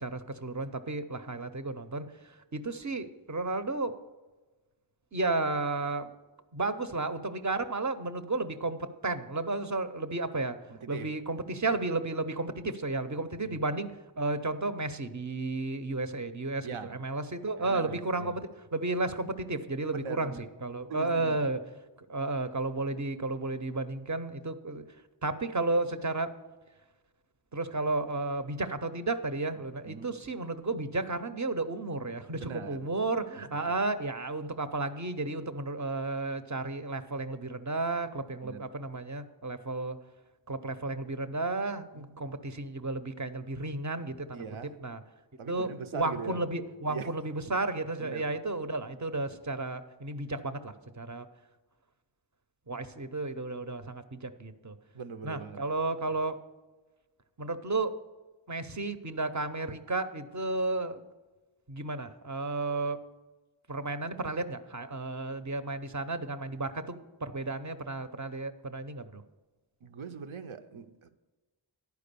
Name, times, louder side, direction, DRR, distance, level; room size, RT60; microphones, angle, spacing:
voice 1, 0.0-2.1 2.5-4.0 5.1-6.1 6.5-10.6 10.9-16.7 17.0-21.6 22.1-24.8 25.2-26.3 27.5-40.0 40.5-44.4 44.8-45.0 45.5-51.3 52.7-54.7 55.2-56.4 57.4-57.9 58.5-61.0 61.7-63.0 63.7-69.2, right 2 dB, 35° right, 0.6 m, -33 dB
voice 2, 10.7-11.2 13.4-13.6 16.6-17.0 17.6-18.4 19.9-20.5 20.9-21.5 29.5-30.2 32.4-32.9 33.4-33.8 38.4-38.7 41.9-42.2 44.3-44.8 45.4-46.4 46.9-47.2 48.0-48.3 54.9-55.6 69.8-71.1, right 5 dB, 75° right, 0.7 m, -42 dB
10.5 x 4.7 x 6.7 m
wide cardioid pair, 40°, 49 cm